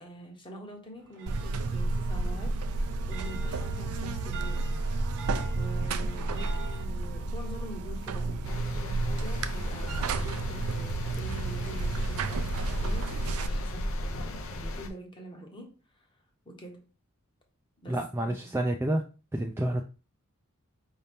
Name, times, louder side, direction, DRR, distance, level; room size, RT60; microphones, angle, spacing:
voice 1, 0.0-2.6 3.1-4.7 5.5-16.9 17.8-18.1, right 1 dB, 20° left, 0.9 m, -45 dB
sound 1, 1.0-6.9, right 2 dB, 55° right, 0.8 m, -45 dB
Buzz, 1.3-13.5, right 3 dB, 80° right, 0.5 m, -31 dB
sound 2, 8.4-14.9, left 1 dB, 65° left, 0.6 m, -35 dB
voice 2, 17.9-19.0 19.3-19.8, right 1 dB, 10° right, 0.3 m, -29 dB
5.2 x 2.8 x 3.4 m
head